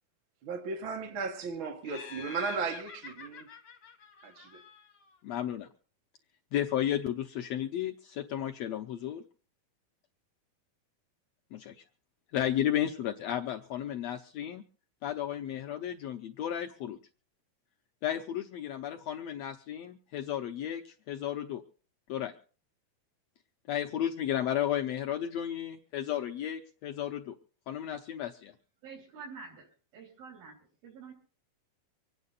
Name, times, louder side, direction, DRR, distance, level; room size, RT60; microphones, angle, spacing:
voice 1, 0.4-3.5 4.2-4.5, right 4 dB, 50° right, 1.7 m, -35 dB
Laughter, 1.8-5.2, left 5 dB, 40° left, 2.7 m, -47 dB
voice 2, 5.2-5.7 6.5-9.2 11.5-11.8 12.3-14.6 15.0-17.0 18.0-21.6 22.1-22.3 23.7-27.3 27.7-28.5, left 11 dB, 85° left, 1.4 m, -33 dB
voice 3, 28.8-29.7 29.9-30.6 30.8-31.1, right 5 dB, 85° right, 5.1 m, -47 dB
25.5 x 9.6 x 4.0 m
omnidirectional pair, 4.1 m